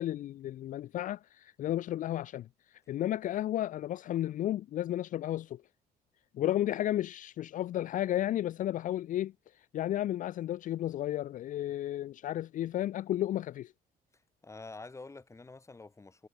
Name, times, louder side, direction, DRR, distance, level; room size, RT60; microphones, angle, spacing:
voice 1, 0.0-5.6 6.3-13.7, left 13 dB, 50° left, 0.4 m, -33 dB
voice 2, 14.1-16.3, left 3 dB, 15° left, 2.9 m, -48 dB
cardioid pair, 110°, 17 cm